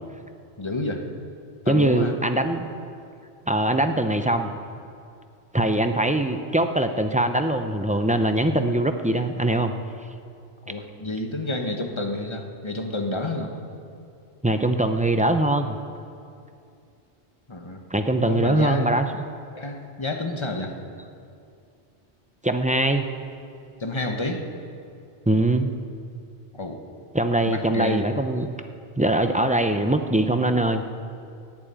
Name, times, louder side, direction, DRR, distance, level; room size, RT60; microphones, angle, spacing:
voice 1, 0.6-1.1 1.6-2.2 10.7-13.5 17.5-17.8 18.2-19.0 19.5-20.7 23.8-24.4 26.5-26.8 27.5-28.1, left 2 dB, 25° left, 4 dB, 1.2 m, -29 dB
voice 2, 1.7-2.7 3.5-4.5 5.5-9.7 14.4-15.8 17.9-19.1 22.4-23.0 25.3-25.7 27.1-28.5 29.0-30.8, right 1 dB, 10° right, 7 dB, 0.3 m, -22 dB
11.0 x 10.0 x 8.8 m, 2.4 s
omnidirectional pair, 1.2 m